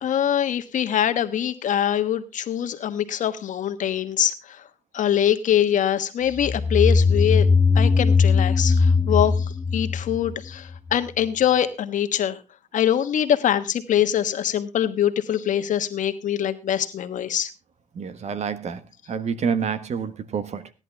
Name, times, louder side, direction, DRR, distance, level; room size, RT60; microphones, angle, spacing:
voice 1, 0.0-4.6 4.9-7.5 7.7-12.4 12.7-17.5, left 10 dB, 70° left, 1.3 m, -23 dB
sound 1, 6.4-10.9, left 4 dB, 15° left, 0.5 m, -19 dB
voice 2, 17.9-18.8 19.1-20.7, right 6 dB, 55° right, 1.3 m, -28 dB
16.5 x 10.5 x 3.4 m
cardioid pair, 120°, 13 cm